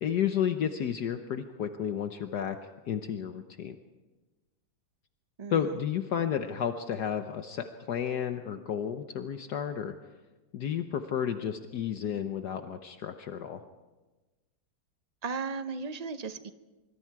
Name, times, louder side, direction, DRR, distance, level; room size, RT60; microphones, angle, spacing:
voice 1, 0.0-2.6 2.9-3.7 5.5-9.9 10.5-13.6, left 8 dB, 65° left, 7 dB, 1.4 m, -32 dB
voice 2, 5.4-5.8 15.2-16.5, right 5 dB, 60° right, 10 dB, 0.4 m, -36 dB
25.5 x 24.0 x 4.7 m, 1.2 s
omnidirectional pair, 2.0 m